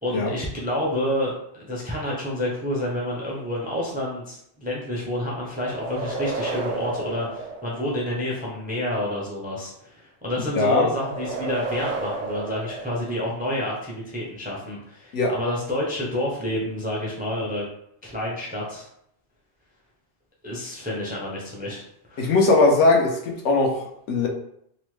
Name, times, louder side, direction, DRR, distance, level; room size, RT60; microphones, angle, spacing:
voice 1, 0.0-17.7 18.0-18.9 20.4-21.8 22.1-22.3, left 1 dB, 15° right, -4 dB, 0.3 m, -29 dB
sound 1, 5.5-8.3 10.9-13.6, right 3 dB, 60° right, 0.6 m, -32 dB
voice 2, 10.6-10.9 15.1-15.3 22.2-24.3, left 3 dB, 90° left, 1 dB, 1.0 m, -20 dB
3.0 x 2.0 x 3.1 m, 0.72 s
omnidirectional pair, 1.2 m